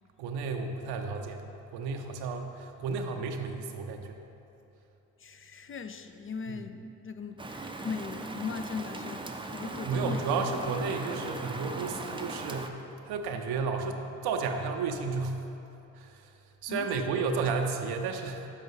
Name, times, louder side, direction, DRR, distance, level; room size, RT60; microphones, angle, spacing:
voice 1, 0.2-1.4 1.7-4.2 9.8-12.7 13.1-15.4 15.9-16.3 16.6-18.5, right 4 dB, 75° right, 4 dB, 0.7 m, -32 dB
voice 2, 5.2-10.3 16.7-17.4, left 5 dB, 35° left, 8 dB, 0.5 m, -39 dB
Rain, 7.4-12.7, right 2 dB, 15° right, 0.6 m, -39 dB
6.5 x 5.0 x 5.6 m, 2.9 s
hypercardioid pair, 45°, 39 cm